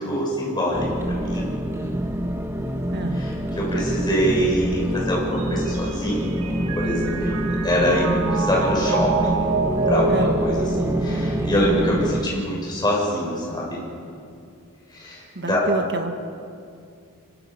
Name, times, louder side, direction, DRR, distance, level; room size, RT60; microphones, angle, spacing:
voice 1, 0.0-1.5 3.1-9.5 9.7-13.8 14.9-15.6, equal, 20° left, -3 dB, 6.6 m, -25 dB
sound 1, 0.7-12.2, right 1 dB, 10° right, 1.4 m, -26 dB
voice 2, 2.9-3.3 10.1-10.4 15.3-16.3, right 2 dB, 50° right, 6 dB, 1.7 m, -29 dB
Mallet percussion, 5.4-11.8, right 3 dB, 85° right, 1.9 m, -28 dB
26.5 x 23.0 x 5.6 m, 2.4 s
head